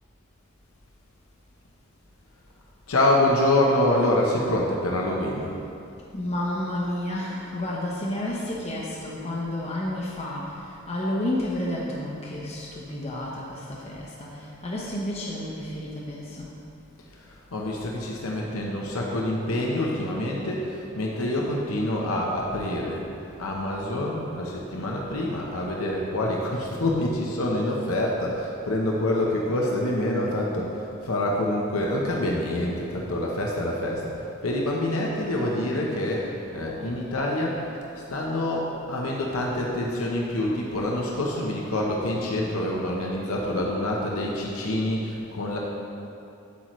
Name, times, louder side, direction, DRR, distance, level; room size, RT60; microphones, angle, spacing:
voice 1, 2.9-5.5 17.1-23.1 23.4-37.6 37.9-45.6, left 1 dB, 80° left, -2 dB, 0.8 m, -26 dB
voice 2, 6.1-16.5, left 1 dB, 30° left, -4 dB, 0.8 m, -31 dB
8.3 x 7.8 x 3.1 m, 2.7 s
head